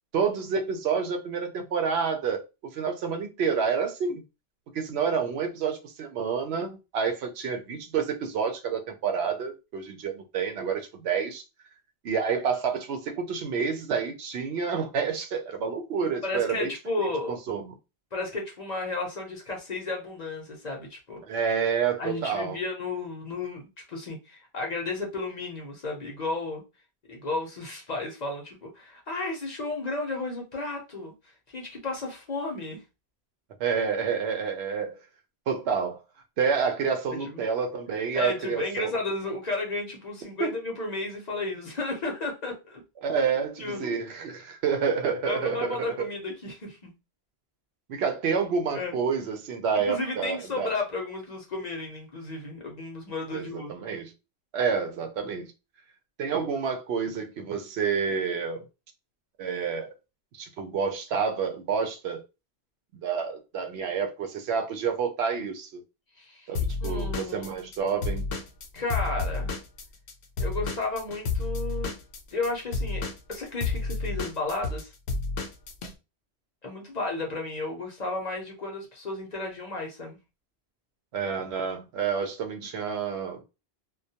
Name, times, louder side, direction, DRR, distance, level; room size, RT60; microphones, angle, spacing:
voice 1, 0.1-2.4 2.7-4.2 4.7-11.4 12.0-16.7 17.3-17.7 21.3-22.6 33.6-35.0 35.5-36.0 36.4-38.9 40.4-40.5 43.0-46.1 47.9-50.7 53.3-54.1 54.5-55.5 56.2-58.7 59.4-59.9 60.3-62.2 62.9-65.8 66.5-68.2 81.1-83.4, right 6 dB, 80° right, 0.8 m, -29 dB
voice 2, 16.2-17.4 18.1-21.2 22.0-23.6 23.9-26.6 27.1-31.1 31.5-32.8 37.2-37.4 38.1-42.8 43.6-44.0 45.3-46.9 48.7-49.0 49.7-53.7 66.2-66.5 66.8-67.6 68.7-69.5 70.4-72.0 72.3-73.0 73.3-74.9 76.6-80.2, left 2 dB, 45° left, 0.7 m, -33 dB
Drum kit / Drum, 66.5-70.1 70.4-75.9, left 3 dB, 80° left, 0.8 m, -30 dB
2.2 x 2.2 x 2.7 m
omnidirectional pair, 1.1 m